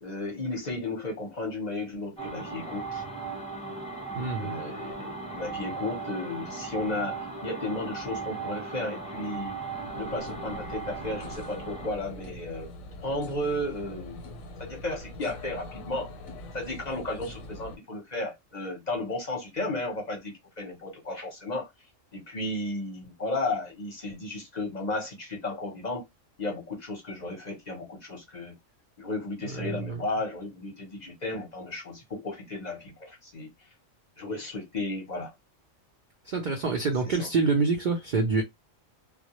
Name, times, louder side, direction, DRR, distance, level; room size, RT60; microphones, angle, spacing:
voice 1, 0.0-3.0 4.4-9.5 9.9-12.7 13.0-14.2 14.6-16.1 16.5-21.7 22.1-26.0 26.4-28.5 29.0-33.5 34.2-35.3, left 2 dB, 40° left, 0.7 m, -34 dB
sound 1, 2.2-12.0, right 4 dB, 10° left, 0.5 m, -37 dB
voice 2, 4.2-4.5 29.4-30.0 36.2-38.4, right 4 dB, 80° right, 0.4 m, -27 dB
sound 2, 9.2-17.8, left 1 dB, 80° left, 1.0 m, -43 dB
2.2 x 2.0 x 2.8 m
omnidirectional pair, 1.4 m